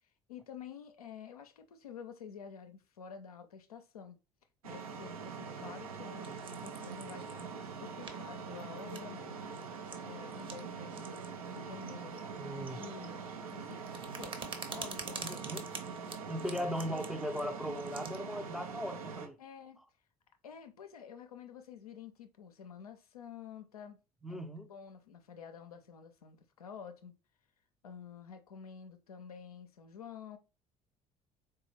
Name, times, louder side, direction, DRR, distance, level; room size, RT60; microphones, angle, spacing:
voice 1, 0.3-4.2 4.6-9.4 10.0-11.2 11.5-12.2 12.5-13.2 13.5-13.9 14.2-15.5 16.5-16.8 19.4-19.8 20.4-24.0 24.3-24.4 24.7-27.1 27.8-30.4, left 7 dB, 80° left, 0.5 m, -49 dB
sound 1, 4.6-19.3, right 5 dB, 75° right, 0.6 m, -44 dB
sound 2, 6.2-7.5 8.0-8.1 8.6-9.2 9.5-10.0 10.3-10.6 10.9-11.3 11.5-13.2 13.5-18.2, right 4 dB, 25° right, 0.8 m, -47 dB
voice 2, 12.4-12.8 15.2-15.7 16.3-19.4 24.2-24.7, equal, ahead, 0.5 m, -38 dB
4.0 x 2.2 x 3.0 m
figure-of-eight pair, 55°, 19 cm